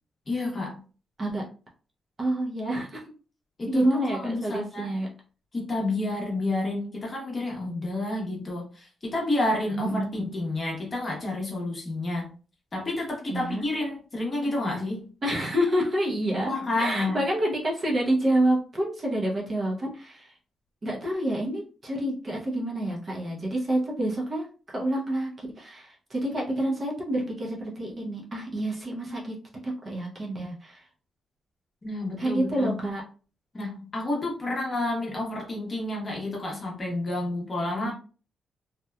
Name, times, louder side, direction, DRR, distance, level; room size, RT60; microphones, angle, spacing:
voice 1, 0.3-0.8 3.6-5.0 5.5-12.3 12.7-15.1 16.4-17.2 31.8-32.8 33.5-37.9, left 2 dB, 25° left, -2 dB, 0.8 m, -30 dB
voice 2, 2.2-3.0 3.7-5.1 9.7-10.1 13.3-13.6 15.2-16.5 16.8-20.3 20.8-29.3 29.6-30.8 32.2-33.0 37.8-37.9, right 1 dB, 30° right, -2 dB, 0.6 m, -28 dB
2.8 x 2.1 x 2.2 m, 0.37 s
wide cardioid pair, 160°, 0 cm